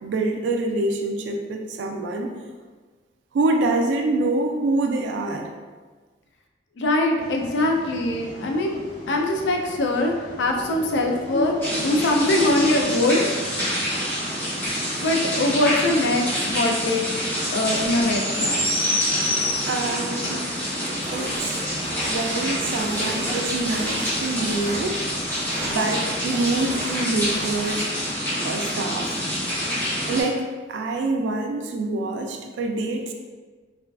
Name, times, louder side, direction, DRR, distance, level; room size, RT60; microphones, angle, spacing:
voice 1, 0.0-2.4 3.3-5.5 19.7-20.5 21.1-21.6 22.1-25.1 25.6-27.9 28.4-29.1 30.1-33.1, right 2 dB, 90° right, 4 dB, 0.3 m, -26 dB
voice 2, 6.8-8.8 9.1-13.2 15.0-17.1 17.5-18.7 20.3-20.4 21.6-21.7 22.9-23.0, left 2 dB, 85° left, 1 dB, 0.4 m, -23 dB
sound 1, 7.2-12.8, equal, 55° left, 0.8 m, -32 dB
sound 2, 11.6-30.2, equal, 10° left, 0.7 m, -26 dB
sound 3, 21.0-27.9, right 1 dB, 45° right, 0.6 m, -36 dB
2.4 x 2.3 x 2.2 m, 1.4 s
head